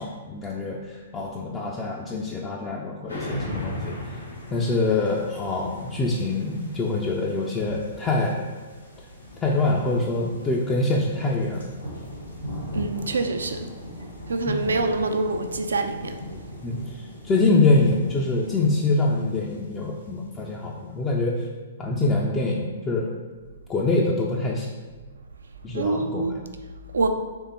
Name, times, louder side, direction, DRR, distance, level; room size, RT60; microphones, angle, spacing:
voice 1, 0.0-4.0 4.5-8.4 9.4-11.7 16.6-21.5 21.8-23.1 23.7-24.7 25.6-26.4, left 2 dB, 15° left, -2 dB, 0.4 m, -25 dB
sound 1, 3.1-20.9, left 1 dB, 80° left, 1.4 m, -38 dB
voice 2, 12.7-13.7 14.3-16.2 25.7-26.4 26.9-27.1, right 3 dB, 70° right, 7 dB, 0.4 m, -25 dB
3.6 x 3.5 x 4.0 m, 1.4 s
figure-of-eight pair, 115°, 0 cm